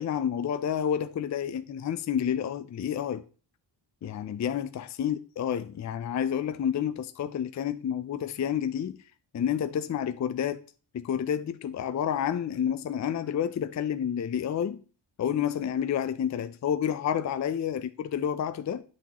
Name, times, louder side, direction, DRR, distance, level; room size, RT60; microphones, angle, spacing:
voice 1, 0.0-3.2 4.0-9.0 9.3-10.6 10.9-14.8 15.2-18.8, left 9 dB, 40° left, 0.5 m, -29 dB
9.5 x 6.2 x 2.9 m
wide cardioid pair, 120°, 48 cm